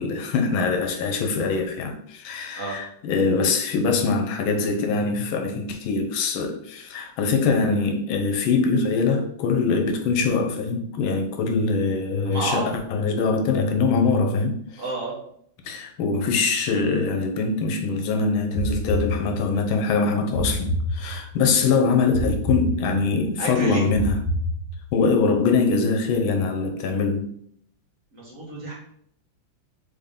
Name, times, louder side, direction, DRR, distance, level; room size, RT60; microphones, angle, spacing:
voice 1, 0.0-14.8 15.6-24.2 24.9-27.3, left 4 dB, 80° left, 1.5 m, -23 dB
voice 2, 12.2-12.7 14.8-15.1 23.4-23.8 28.1-28.7, right 2 dB, 45° right, 1.5 m, -29 dB
sound 1, 18.5-19.7 20.3-21.5 22.1-23.3 23.9-25.1, equal, ahead, 1.5 m, -27 dB
4.1 x 3.6 x 3.6 m
omnidirectional pair, 2.2 m